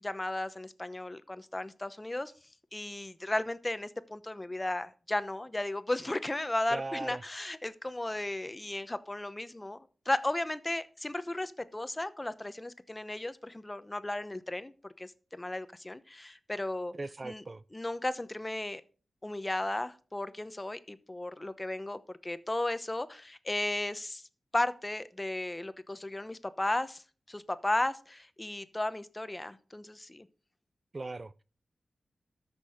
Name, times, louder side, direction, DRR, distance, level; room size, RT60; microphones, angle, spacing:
voice 1, 0.0-2.3 2.7-9.8 10.1-16.9 17.2-17.4 17.7-18.8 19.2-24.2 24.5-27.0 27.3-30.3, left 1 dB, 20° left, 0.9 m, -35 dB
voice 2, 6.7-7.2 16.9-17.6 30.9-31.4, right 2 dB, 40° right, 0.4 m, -39 dB
13.5 x 6.2 x 5.0 m
cardioid pair, 65°, 0 cm